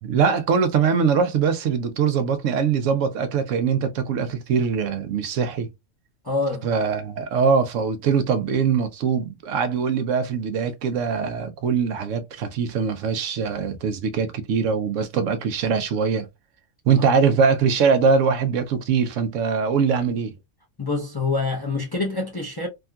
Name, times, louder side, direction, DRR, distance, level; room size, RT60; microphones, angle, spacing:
voice 1, 0.0-5.7 6.6-16.3 16.9-20.3, right 6 dB, 80° right, 1.0 m, -22 dB
voice 2, 6.2-6.7 20.8-22.7, left 3 dB, 25° left, 0.5 m, -26 dB
3.6 x 2.3 x 2.2 m
omnidirectional pair, 1.3 m